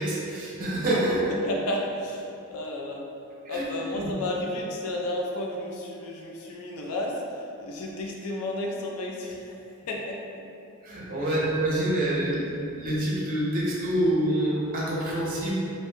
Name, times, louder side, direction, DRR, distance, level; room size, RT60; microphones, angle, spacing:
voice 1, 0.0-1.3 3.5-3.6 3.9-4.1 10.8-15.5, right 1 dB, 40° right, -5 dB, 0.5 m, -26 dB
voice 2, 1.3-3.1 3.5-9.6 9.9-10.4 11.2-11.5, left 1 dB, 85° left, -1 dB, 0.4 m, -32 dB
2.6 x 2.0 x 3.1 m, 2.6 s
head